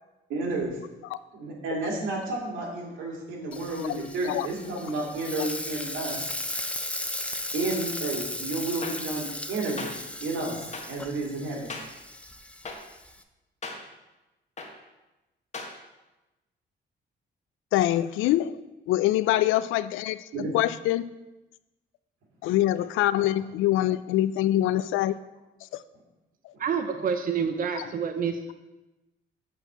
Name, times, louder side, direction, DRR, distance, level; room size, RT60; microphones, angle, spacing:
voice 1, 0.3-0.8 1.3-6.3 7.5-11.7 20.3-20.5 26.5-26.6, right 2 dB, 80° right, -2 dB, 2.5 m, -31 dB
Frying (food), 3.5-13.2, left 1 dB, 5° left, 0.6 m, -36 dB
sound 1, 8.8-8.9 9.8-9.9 10.7-10.8 11.7-11.8 12.6-12.8 13.6-13.7 14.6-14.7 15.5-15.7, left 3 dB, 35° left, 1.6 m, -35 dB
voice 2, 17.7-18.6 18.9-20.2 20.5-21.0 22.4-25.2 25.7-25.8 27.8-27.9, left 14 dB, 90° left, 15 dB, 0.4 m, -24 dB
voice 3, 26.6-28.5, right 6 dB, 45° right, 7 dB, 0.7 m, -28 dB
8.1 x 4.5 x 6.7 m, 1.0 s
cardioid pair, 90°, 20 cm